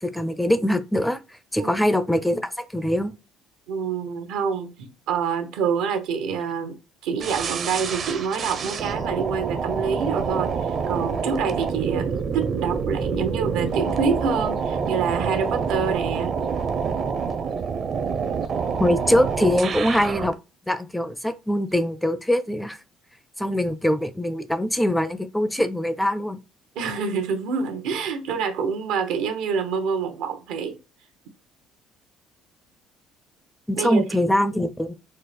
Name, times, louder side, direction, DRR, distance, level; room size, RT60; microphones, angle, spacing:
voice 1, 0.0-3.1 18.8-20.3 20.7-22.8 23.4-26.4 33.7-34.9, left 1 dB, 5° left, 0.4 m, -23 dB
voice 2, 3.7-6.8 7.0-16.3 26.7-30.8 33.7-34.3, right 6 dB, 85° right, 0.8 m, -27 dB
sound 1, 7.2-20.3, right 6 dB, 45° right, 0.6 m, -27 dB
4.3 x 2.0 x 3.2 m
cardioid pair, 110°, 0 cm